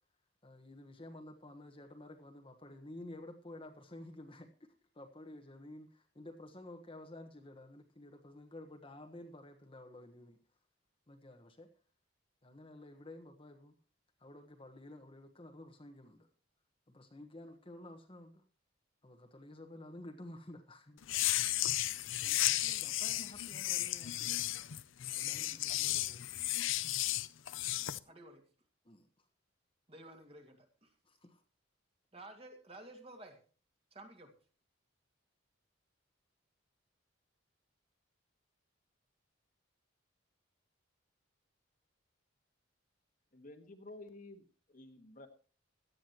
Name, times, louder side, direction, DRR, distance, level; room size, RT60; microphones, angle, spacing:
voice 1, 0.4-10.4 11.1-11.7 12.4-13.8 14.2-16.3 16.9-18.4 19.0-21.0 22.1-24.4 25.1-26.3 28.8-29.1 31.0-31.4, left 1 dB, 25° left, 1.3 m, -52 dB
sound 1, 21.0-28.0, left 15 dB, 70° left, 0.6 m, -34 dB
voice 2, 28.1-28.4 29.9-30.9 32.1-33.4 33.9-34.3, right 1 dB, 30° right, 2.3 m, -53 dB
voice 3, 43.3-45.3, left 2 dB, 40° left, 1.6 m, -52 dB
17.0 x 12.5 x 3.0 m
head